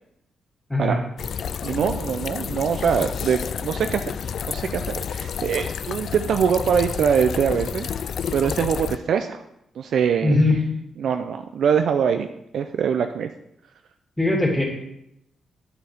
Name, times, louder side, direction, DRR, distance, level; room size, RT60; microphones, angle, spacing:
sound 1, 1.2-9.0, left 7 dB, 55° left, 0.3 m, -30 dB
voice 1, 1.6-4.1 4.5-9.4 9.8-10.4 11.0-12.3 12.5-13.3, right 7 dB, 65° right, 7 dB, 0.5 m, -23 dB
voice 2, 10.2-10.6 14.2-14.6, left 2 dB, 5° left, -1 dB, 2.7 m, -19 dB
11.0 x 9.5 x 3.5 m, 0.81 s
cardioid pair, 140°, 0 cm